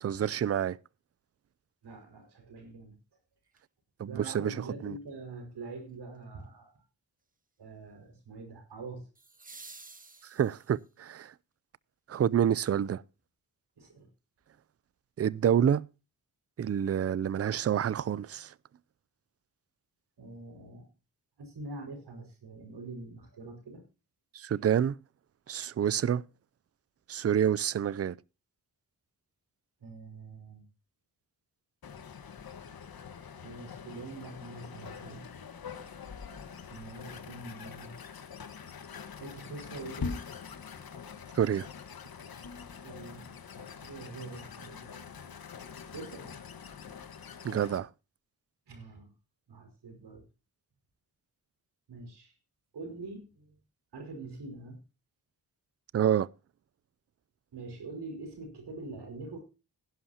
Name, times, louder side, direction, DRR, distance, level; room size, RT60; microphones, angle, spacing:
voice 1, 0.0-0.8 4.0-5.0 10.2-11.3 12.1-13.0 15.2-15.8 16.6-18.6 24.3-25.0 25.5-26.3 27.1-28.2 41.3-41.7 47.4-47.9 55.9-56.3, right 9 dB, 40° right, 0.5 m, -28 dB
voice 2, 1.8-3.0 4.1-6.8 7.6-9.1 13.8-14.1 20.2-20.9 21.4-23.8 29.8-30.7 33.4-35.2 36.5-38.0 39.2-40.2 42.7-43.3 43.6-44.9 45.9-46.3 46.7-46.9 48.7-49.1 49.5-50.3 51.9-52.4 52.7-53.6 53.9-54.8 57.5-59.4, right 3 dB, 90° right, 5.4 m, -44 dB
sound 1, 3.5-3.6 9.1-10.9 13.1-13.2, right 3 dB, 20° right, 1.1 m, -51 dB
sound 2, 31.8-47.8, left 6 dB, 65° left, 1.5 m, -44 dB
16.5 x 11.5 x 2.8 m
cardioid pair, 90°, 39 cm